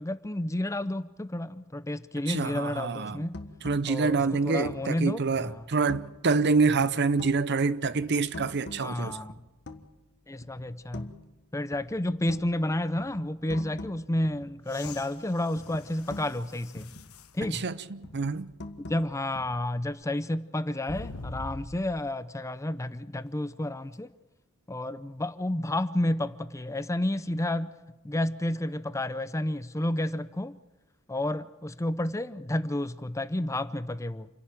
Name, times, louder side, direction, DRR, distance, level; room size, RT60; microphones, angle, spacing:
voice 1, 0.0-3.4 3.8-5.6 8.8-9.4 10.3-11.1 11.5-16.9 17.3-17.6 18.9-24.1 24.7-27.8 28.0-30.6 31.1-34.3, left 1 dB, 15° left, 0.6 m, -31 dB
voice 2, 2.3-3.3 3.6-9.2 17.5-18.5, right 4 dB, 50° right, 0.7 m, -26 dB
sound 1, 3.3-6.3 6.6-7.6 7.8-10.1 10.4-11.4 11.7-15.3 15.6-17.7 18.0-19.9, left 2 dB, 55° left, 1.5 m, -45 dB
sound 2, 14.6-17.4 18.1-18.2 20.9-22.1 23.9-24.0, left 2 dB, 75° left, 1.2 m, -44 dB
28.0 x 11.5 x 8.9 m
head